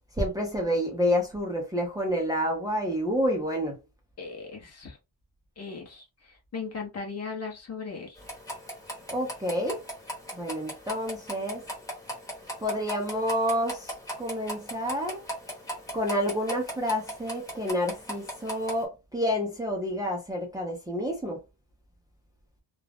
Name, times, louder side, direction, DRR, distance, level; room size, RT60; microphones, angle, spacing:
voice 1, 0.2-3.8 9.1-9.8 10.3-11.6 12.6-15.2 15.9-21.4, equal, 10° right, 0.6 m, -29 dB
voice 2, 4.2-5.0 5.6-8.2, left 5 dB, 35° left, 0.8 m, -38 dB
sound 1, 8.2-18.8, equal, 10° left, 1.0 m, -39 dB
2.4 x 2.1 x 3.3 m
cardioid pair, 155°, 44 cm